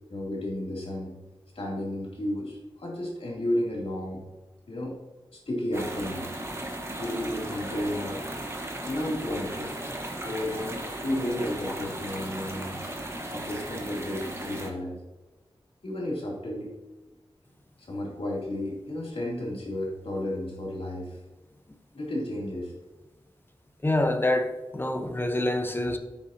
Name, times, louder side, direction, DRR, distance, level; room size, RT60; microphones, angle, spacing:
voice 1, 0.1-1.1 1.5-4.2 4.7-5.0 5.3-6.2 7.0-8.2 8.8-9.8 10.2-10.8 11.0-12.9 13.3-15.0 15.8-16.7 17.9-21.2 21.9-22.7, left 1 dB, 75° left, -3 dB, 3.1 m, -32 dB
sound 1, 5.7-14.7, right 1 dB, 25° right, 1.5 m, -36 dB
voice 2, 23.8-26.0, left 1 dB, 20° left, 6 dB, 1.0 m, -26 dB
11.5 x 7.1 x 2.9 m, 1.2 s
wide cardioid pair, 75°, 10 cm